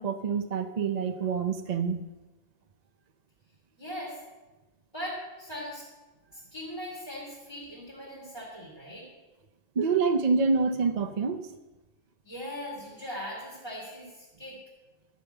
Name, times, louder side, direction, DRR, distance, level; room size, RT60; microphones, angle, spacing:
voice 1, 0.0-2.0 9.7-11.5, right 5 dB, 40° right, 6 dB, 0.6 m, -27 dB
voice 2, 3.8-4.2 4.9-5.8 6.3-9.1 12.2-14.6, equal, 20° left, -7 dB, 2.8 m, -39 dB
12.0 x 6.7 x 8.0 m, 1.1 s
omnidirectional pair, 1.4 m